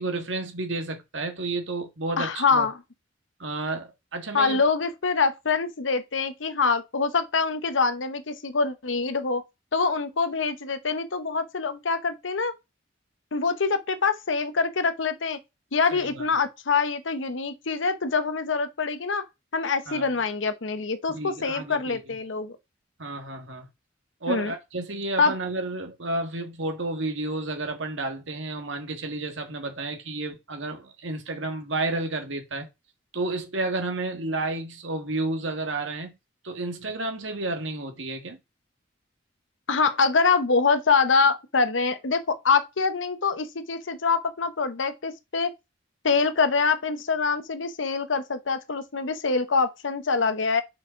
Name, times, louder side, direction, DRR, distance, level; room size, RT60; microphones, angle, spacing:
voice 1, 0.0-2.7 3.4-4.6 15.9-16.3 19.9-20.0 21.1-22.1 23.0-23.7 24.2-32.7 33.1-36.1 36.4-38.4, right 2 dB, 80° right, 1.6 m, -31 dB
voice 2, 2.2-2.7 4.3-9.4 9.7-12.5 13.3-15.4 15.7-19.2 19.5-22.6 24.3-24.5 25.2-25.4 39.7-45.5 46.0-50.6, left 4 dB, 80° left, 0.9 m, -25 dB
5.7 x 5.1 x 5.6 m
head